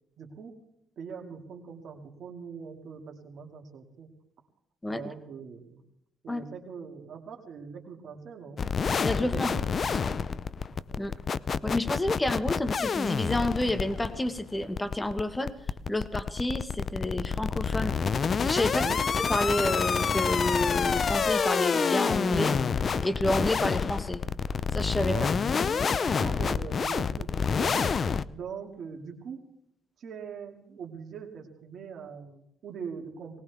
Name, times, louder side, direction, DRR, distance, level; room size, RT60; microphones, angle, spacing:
voice 1, 0.2-0.6 1.0-4.1 4.9-5.8 6.2-8.6 9.2-9.9 10.4-10.5 10.9-11.1 18.7-19.0 25.1-25.4 26.0-27.9 28.3-29.5 30.0-33.4, right 6 dB, 60° right, 1 dB, 2.3 m, -42 dB
sound 1, 8.6-28.2, left 5 dB, 45° left, 0.5 m, -28 dB
voice 2, 9.0-9.5 10.0-10.2 11.0-11.1 11.6-15.5 15.9-18.0 18.4-22.6 23.0-24.2 24.7-25.2, left 1 dB, 15° left, 10 dB, 1.3 m, -29 dB
19.5 x 19.0 x 3.5 m, 0.77 s
cardioid pair, 95°, 0 cm